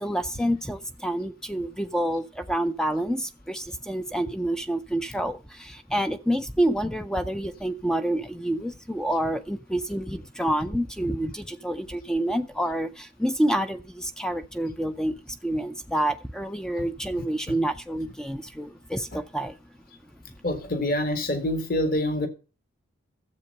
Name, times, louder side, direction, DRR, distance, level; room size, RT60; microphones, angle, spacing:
voice 1, 0.0-19.6, right 1 dB, 5° left, 9 dB, 0.4 m, -28 dB
voice 2, 20.4-22.3, left 1 dB, 40° left, 7 dB, 1.7 m, -26 dB
12.5 x 7.6 x 5.4 m, 0.34 s
head